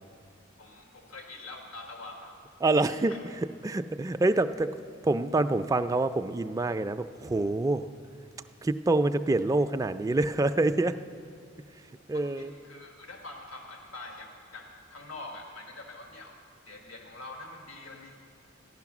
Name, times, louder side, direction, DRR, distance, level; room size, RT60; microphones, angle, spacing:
voice 1, 0.6-2.4 2.8-3.2 12.1-18.2, left 2 dB, 85° left, 2 dB, 1.3 m, -45 dB
voice 2, 2.6-3.1 3.6-4.7 5.0-7.8 8.6-11.0 12.1-12.5, right 2 dB, 15° right, 8 dB, 0.3 m, -26 dB
14.0 x 11.0 x 6.0 m, 2.3 s
head